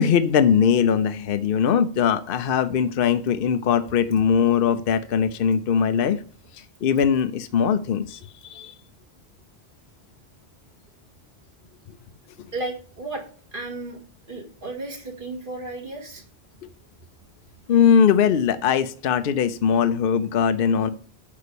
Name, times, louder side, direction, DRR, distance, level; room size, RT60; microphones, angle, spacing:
voice 1, 0.0-6.2 6.5-8.7 17.7-20.9, left 7 dB, 60° left, 10 dB, 0.8 m, -21 dB
voice 2, 12.5-13.2 13.5-14.0 14.3-16.2, right 2 dB, 50° right, 3 dB, 2.2 m, -33 dB
8.4 x 5.6 x 6.9 m, 0.43 s
omnidirectional pair, 1.1 m